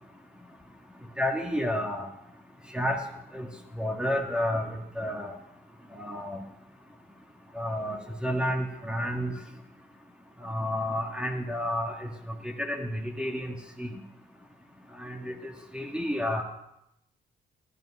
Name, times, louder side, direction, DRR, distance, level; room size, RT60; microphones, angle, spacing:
voice 1, 1.2-2.0 2.7-3.0 3.3-3.5 3.8-5.3 6.0-6.4 7.6-9.3 10.4-11.9 12.4-13.9 15.0-16.4, equal, 5° right, 2 dB, 1.8 m, -30 dB
12.5 x 11.5 x 5.5 m, 0.83 s
cardioid pair, 90°, 20 cm